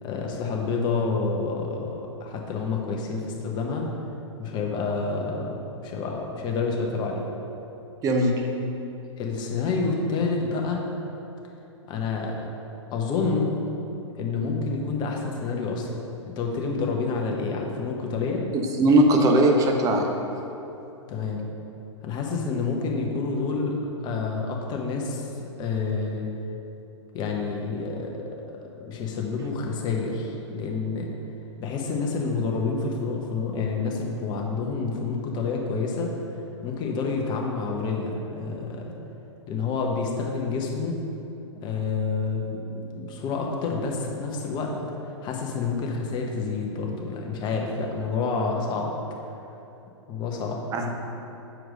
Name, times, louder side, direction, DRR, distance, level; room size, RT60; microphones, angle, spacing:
voice 1, 0.0-3.9 4.4-7.3 9.2-10.8 11.9-12.5 12.9-13.5 14.2-16.0 16.3-18.5 21.1-21.4 22.0-25.3 25.6-26.3 27.1-28.2 28.7-31.1 31.6-36.1 36.6-38.8 39.5-41.0 41.5-44.7 45.2-48.9 50.1-50.6, left 4 dB, 25° left, 0 dB, 1.0 m, -28 dB
voice 2, 8.0-8.4 18.5-20.1 50.7-51.1, right 1 dB, 20° right, 2 dB, 0.7 m, -20 dB
6.6 x 4.5 x 5.0 m, 2.9 s
figure-of-eight pair, 115°, 16 cm